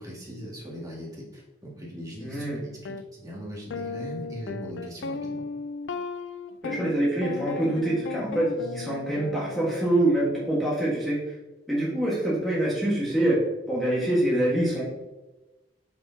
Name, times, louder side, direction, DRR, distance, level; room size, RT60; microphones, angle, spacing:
voice 1, 0.0-2.5 2.8-5.4, equal, 20° right, -5 dB, 1.9 m, -40 dB
voice 2, 2.2-2.6 6.6-11.2 11.7-13.4 13.7-14.8, right 1 dB, ahead, -8 dB, 1.5 m, -25 dB
sound 1, 2.9-3.0 3.7-10.0, left 4 dB, 75° left, 0.4 m, -35 dB
6.3 x 5.9 x 2.8 m, 1.1 s
head